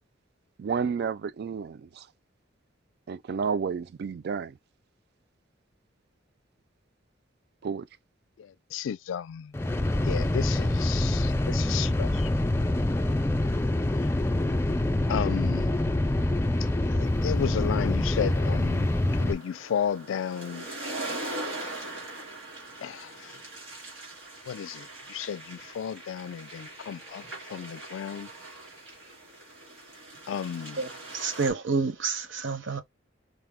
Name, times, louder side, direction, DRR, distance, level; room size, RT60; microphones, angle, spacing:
voice 1, 0.6-2.1 3.1-4.6 7.6-7.9, right 6 dB, 55° right, 0.3 m, -31 dB
voice 2, 8.4-9.5 10.0-12.3 15.1-15.7 16.9-18.9 19.2-20.7 22.8-23.4 24.5-27.2 27.5-28.3 30.3-30.8, left 8 dB, 80° left, 0.3 m, -33 dB
sound 1, 9.5-19.3, left 1 dB, 15° left, 0.4 m, -25 dB
sound 2, 17.3-31.5, right 2 dB, 85° right, 2.4 m, -41 dB
voice 3, 30.8-32.8, right 4 dB, 70° right, 0.8 m, -29 dB
5.0 x 2.1 x 3.5 m
head